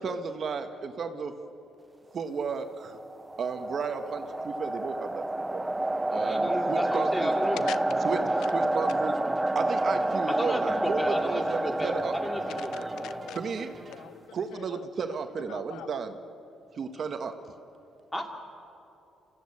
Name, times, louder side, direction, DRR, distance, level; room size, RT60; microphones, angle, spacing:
voice 1, 0.0-1.3 2.1-3.0 3.4-5.6 6.1-7.3 8.0-8.2 8.5-9.2 9.5-12.1 13.3-13.7 14.3-16.2 16.7-17.3, right 5 dB, 55° right, 7 dB, 1.4 m, -33 dB
sound 1, 2.9-13.8, right 2 dB, 15° right, 0.4 m, -29 dB
voice 2, 6.1-7.6 10.3-13.2 18.1-18.3, left 1 dB, 15° left, 2 dB, 2.8 m, -34 dB
sound 2, 7.2-14.1, right 3 dB, 35° right, 2.4 m, -49 dB
voice 3, 7.5-8.1 8.4-8.9 12.4-14.8 15.1-15.2 15.5-16.0, left 12 dB, 85° left, 15 dB, 0.5 m, -43 dB
26.5 x 14.5 x 8.6 m, 2.9 s
cardioid pair, 90°, 0 cm